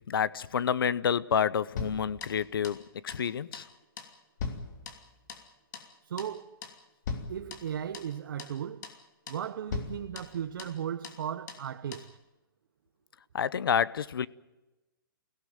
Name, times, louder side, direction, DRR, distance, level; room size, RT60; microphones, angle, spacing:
voice 1, 0.1-3.6 13.3-14.3, left 7 dB, 80° left, 0.8 m, -29 dB
sound 1, 1.8-2.8 3.1-3.3 3.5-3.7 4.0-5.5 5.7-5.9 6.2-6.4 6.6-6.8 7.1-8.1 8.4-8.6 8.8-9.0 9.3-9.5 9.7-10.8 11.0-11.2 11.5-11.7 11.9-12.1, left 5 dB, 55° left, 2.9 m, -40 dB
voice 2, 6.0-6.6 7.3-8.9 9.3-12.1, right 9 dB, 65° right, 0.9 m, -36 dB
24.0 x 17.0 x 9.0 m
hypercardioid pair, 150°, 12 cm